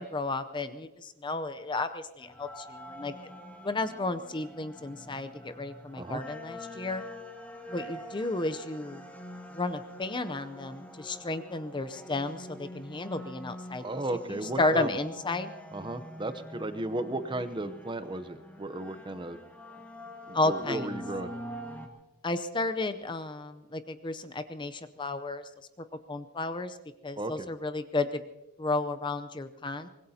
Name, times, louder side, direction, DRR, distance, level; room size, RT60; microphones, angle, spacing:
voice 1, 0.0-3.1 3.6-7.0 7.7-9.0 9.5-13.8 14.3-15.5 20.3-20.9 22.2-25.4 26.1-26.8 27.0-28.2 28.6-29.9, left 2 dB, 20° left, 10 dB, 0.6 m, -32 dB
sound 1, 2.2-21.9, equal, 5° left, 1.3 m, -45 dB
voice 2, 13.8-15.0 15.7-19.4 20.3-21.3 27.2-27.5, right 2 dB, 20° right, 11 dB, 0.7 m, -34 dB
24.5 x 20.5 x 2.8 m, 1.0 s
head